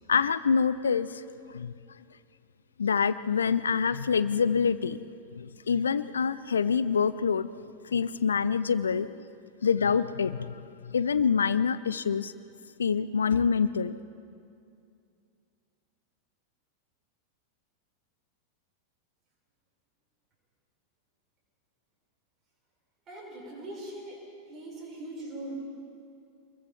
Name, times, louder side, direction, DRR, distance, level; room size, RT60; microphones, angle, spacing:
voice 1, 0.1-1.2 1.5-1.7 2.8-5.0 5.3-7.5 7.9-9.1 9.6-12.3 12.8-13.9, left 6 dB, 70° left, 15 dB, 0.5 m, -26 dB
voice 2, 23.1-24.2 24.5-25.6, right 1 dB, 30° right, -2 dB, 6.8 m, -41 dB
27.5 x 22.0 x 4.5 m, 2.4 s
figure-of-eight pair, 90°, 0 cm